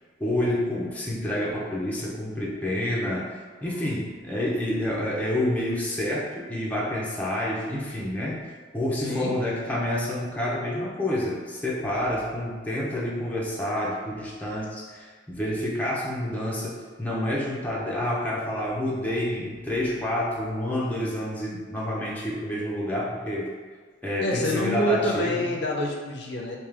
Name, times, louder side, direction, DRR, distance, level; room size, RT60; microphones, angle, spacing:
voice 1, 0.2-3.3 3.6-8.5 8.7-23.5 24.0-25.5, left 1 dB, 10° left, -5 dB, 0.5 m, -28 dB
voice 2, 8.9-9.4 24.2-26.6, equal, 60° left, -1 dB, 0.5 m, -27 dB
3.6 x 2.7 x 3.3 m, 1.5 s
head